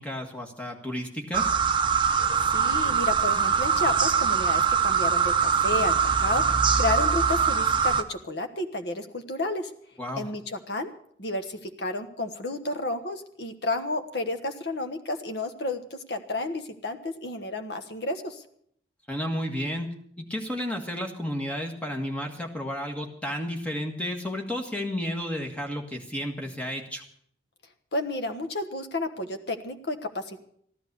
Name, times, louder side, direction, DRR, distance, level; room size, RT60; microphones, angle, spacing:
voice 1, 0.0-1.5 10.0-10.3 19.1-19.9 20.2-27.0, equal, 5° left, 2 dB, 1.7 m, -32 dB
sound 1, 1.3-8.0, right 6 dB, 25° right, 0.7 m, -23 dB
voice 2, 2.5-9.7 10.2-10.9 11.2-18.4 27.9-30.4, left 2 dB, 60° left, 7 dB, 1.3 m, -31 dB
14.5 x 11.5 x 6.8 m, 0.66 s
head